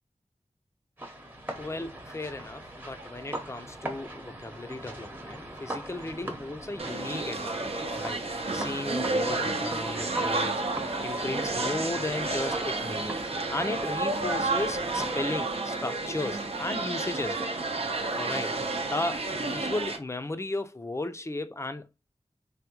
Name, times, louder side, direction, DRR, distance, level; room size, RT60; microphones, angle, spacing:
sound 1, 1.0-15.2, right 1 dB, 15° right, 0.9 m, -41 dB
voice 1, 1.5-10.6 11.0-17.5 18.1-18.5 18.8-21.9, left 2 dB, 25° left, 0.5 m, -35 dB
sound 2, 6.8-20.0, right 2 dB, 60° right, 0.6 m, -31 dB
3.4 x 2.2 x 2.8 m
wide cardioid pair, 75°, 11 cm